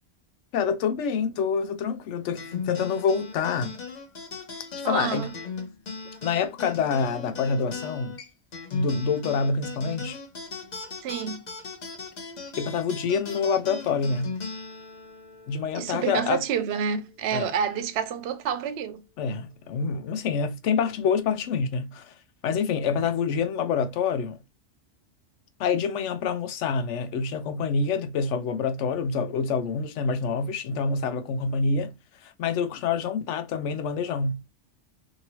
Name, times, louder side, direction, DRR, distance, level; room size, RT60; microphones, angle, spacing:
voice 1, 0.5-3.8 4.8-5.3 6.2-8.2 8.7-10.2 12.6-14.4 15.5-16.4 17.3-17.5 19.2-22.1 22.4-24.4 25.6-31.9 32.2-34.4, left 5 dB, 75° left, 0.9 m, -27 dB
sound 1, 2.4-17.1, left 4 dB, 40° left, 0.8 m, -39 dB
voice 2, 4.8-5.3 11.0-11.4 15.7-19.0, right 7 dB, 65° right, 0.8 m, -28 dB
2.9 x 2.7 x 2.9 m
omnidirectional pair, 1.2 m